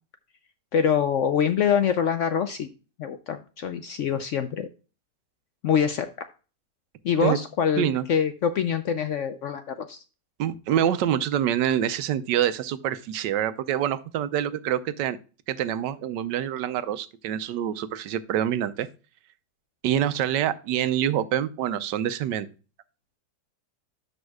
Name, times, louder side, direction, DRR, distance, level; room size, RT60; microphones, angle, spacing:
voice 1, 0.7-2.7 3.0-4.7 5.6-6.3 7.0-10.0, left 8 dB, 70° left, 9 dB, 0.7 m, -25 dB
voice 2, 10.4-15.2 15.5-18.9 19.8-22.5, right 10 dB, 85° right, 13 dB, 1.3 m, -26 dB
12.5 x 5.2 x 2.3 m, 0.34 s
omnidirectional pair, 1.8 m